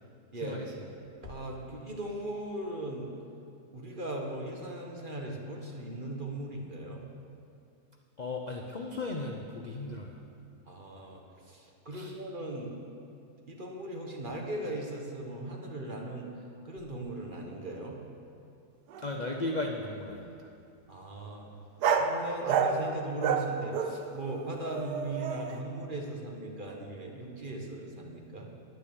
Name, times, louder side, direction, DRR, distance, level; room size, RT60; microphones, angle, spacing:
voice 1, 0.3-0.6 1.2-3.1 3.7-7.0 10.7-11.2 11.5-12.7 13.5-16.3 16.6-18.0 20.9-21.5 22.0-28.5, right 1 dB, 35° right, 0 dB, 1.3 m, -38 dB
voice 2, 8.2-10.2 11.9-12.1 19.0-20.4, left 2 dB, 60° left, 2 dB, 0.4 m, -36 dB
sound 1, 18.9-19.0 19.3-20.0 21.8-22.2 22.5-22.8 23.2-25.6, right 7 dB, 75° right, 1.3 m, -30 dB
9.9 x 9.5 x 7.0 m, 2.5 s
omnidirectional pair, 1.8 m